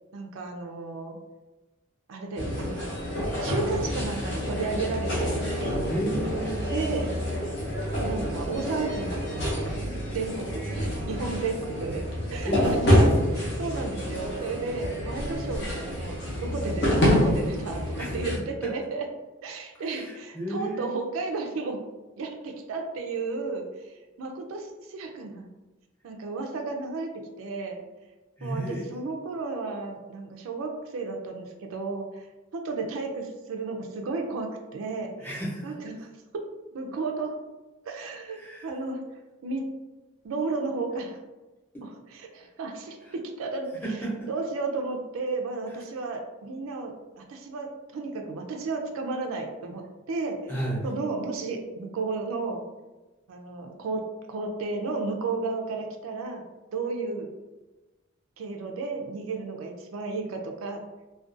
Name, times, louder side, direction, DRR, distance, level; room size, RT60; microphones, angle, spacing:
voice 1, 0.1-1.2 2.1-2.9 3.4-5.5 6.7-7.1 8.0-9.8 10.1-12.0 12.3-12.5 12.9-13.1 13.4-19.1 19.4-21.8 22.2-25.6 26.0-27.8 28.4-32.3 32.5-35.1 35.6-36.4 36.7-37.4 37.8-39.0 39.4-39.7 40.2-41.2 41.8-43.7 44.3-50.5 50.8-52.6 53.3-54.0 54.3-56.4 56.7-57.3 58.4-60.8, right 3 dB, 85° right, 3 dB, 0.4 m, -33 dB
sound 1, 2.4-18.4, equal, 55° left, 0.6 m, -27 dB
voice 2, 5.9-6.7 12.4-13.3 18.0-18.1 18.6-18.7 19.8-20.9 28.4-28.8 35.2-35.6 38.3-38.7 43.0-43.1 43.8-44.3 50.5-50.8, right 1 dB, 10° left, -7 dB, 0.7 m, -32 dB
2.4 x 2.2 x 2.5 m, 1.1 s
head